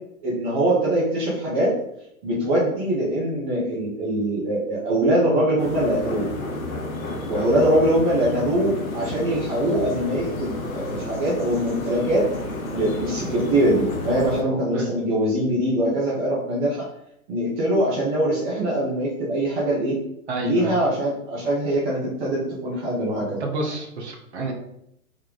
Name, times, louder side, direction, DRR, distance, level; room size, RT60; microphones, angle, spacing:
voice 1, 0.2-1.7 2.2-6.2 7.3-12.3 12.7-16.9 17.3-20.0 20.4-23.4, right 1 dB, 15° right, -5 dB, 0.6 m, -23 dB
sound 1, 5.6-14.4, left 2 dB, 70° left, 0.9 m, -31 dB
voice 2, 20.3-20.8 23.4-24.5, right 2 dB, 50° right, 2 dB, 1.0 m, -29 dB
3.6 x 2.2 x 3.7 m, 0.75 s
figure-of-eight pair, 115°, 43 cm